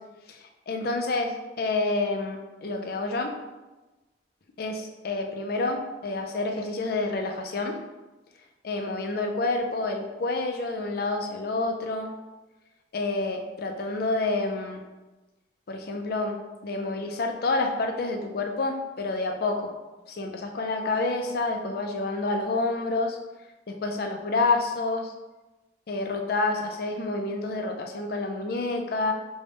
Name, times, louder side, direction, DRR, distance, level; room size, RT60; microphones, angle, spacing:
voice 1, 0.3-3.4 4.6-7.8 8.6-12.1 12.9-14.8 15.7-16.4 16.6-19.7 20.1-23.2 23.7-25.1 25.9-29.1, left 3 dB, 55° left, 4 dB, 0.5 m, -28 dB
5.2 x 2.3 x 3.4 m, 1.1 s
head